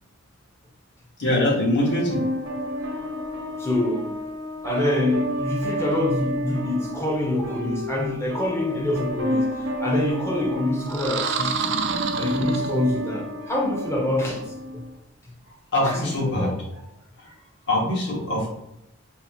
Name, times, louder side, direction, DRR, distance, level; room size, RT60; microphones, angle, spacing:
voice 1, 1.2-2.2 15.7-16.5 17.7-18.5, left 1 dB, 55° left, 1.4 m, -22 dB
sound 1, 1.9-14.9, equal, 75° right, 0.9 m, -31 dB
voice 2, 3.6-4.1 4.6-9.5 9.8-11.9 12.2-14.4 15.8-16.5, left 1 dB, 10° left, 0.7 m, -25 dB
sound 2, 10.9-13.2, right 6 dB, 55° right, 0.3 m, -28 dB
4.2 x 2.1 x 4.2 m
head